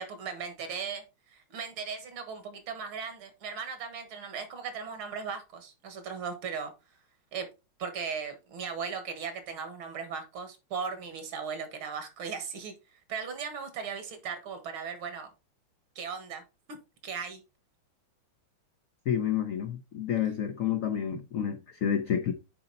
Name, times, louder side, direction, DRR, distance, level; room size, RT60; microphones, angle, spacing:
voice 1, 0.0-6.7 7.3-7.5 7.8-12.7 13.1-15.3 16.0-16.4 16.7-16.8 17.0-17.4 21.1-21.2, right 6 dB, 75° right, 2.3 m, -37 dB
voice 2, 19.1-22.3, left 9 dB, 75° left, 0.7 m, -29 dB
8.9 x 4.1 x 4.0 m
omnidirectional pair, 2.3 m